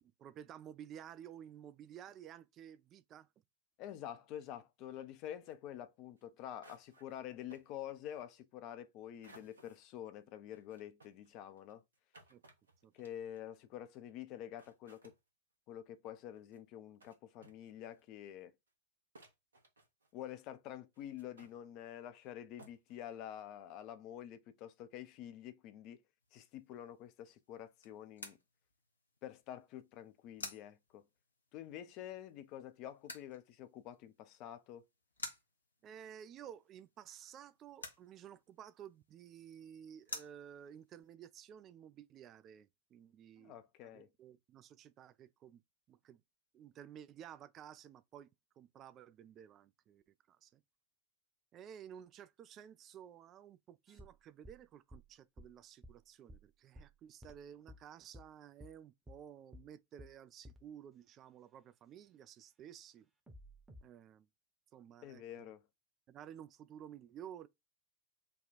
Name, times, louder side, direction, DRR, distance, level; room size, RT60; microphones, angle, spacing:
voice 1, 0.0-3.3 12.3-12.4 12.8-12.9 35.8-45.6 45.9-46.2 46.5-48.3 48.6-50.6 51.5-63.1 63.8-64.3 64.7-65.6 66.1-67.5, right 9 dB, 30° right, 0.4 m, -54 dB
voice 2, 3.8-11.8 12.9-15.1 15.7-18.5 20.1-26.0 26.3-28.4 29.2-31.1 31.5-34.8 43.4-44.1 65.0-65.6, left 11 dB, 40° left, 0.5 m, -48 dB
sound 1, 5.2-5.5 6.2-6.3 6.6-7.2 7.5-7.7 9.2-9.8 10.5-13.5 14.3-14.4 14.6-15.2 16.2-16.6 17.0-17.1 17.4-18.0 18.7-18.8 19.1-20.2 20.9-21.6 22.2-22.3 22.6-23.0, right 2 dB, 70° right, 1.0 m, -62 dB
sound 2, 26.2-41.1, left 3 dB, 75° left, 0.9 m, -54 dB
sound 3, 53.9-57.8 58.1-58.3 58.6-58.7 59.1-59.2 59.5-59.7 60.0-60.1 60.4-60.7 63.3-63.8, left 1 dB, 10° right, 0.9 m, -55 dB
3.4 x 2.3 x 4.1 m
figure-of-eight pair, 90°, 0 cm